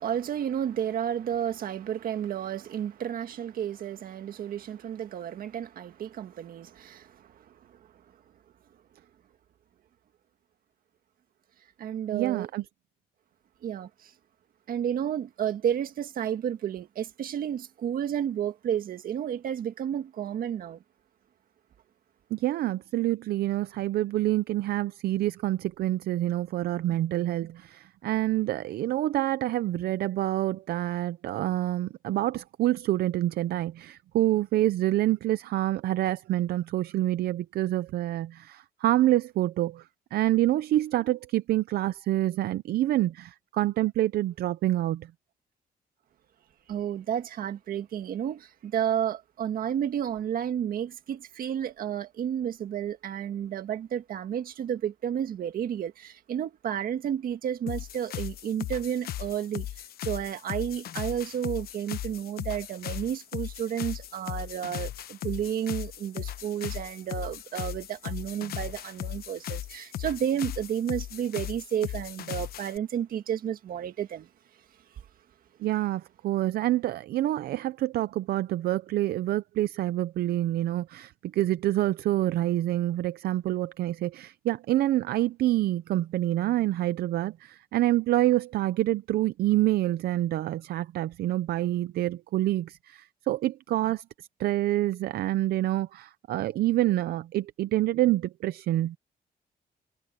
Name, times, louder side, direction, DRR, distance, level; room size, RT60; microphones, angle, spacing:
voice 1, 0.0-7.9 11.8-12.5 13.6-14.1 14.7-20.8 46.7-59.7 60.0-74.3, right 9 dB, 65° right, 1.8 m, -31 dB
voice 2, 12.1-12.6 22.3-39.8 40.1-45.1 75.6-99.0, right 14 dB, 80° right, 0.6 m, -27 dB
sound 1, 57.7-72.8, left 12 dB, 75° left, 1.0 m, -37 dB
cardioid pair, 135°, 16 cm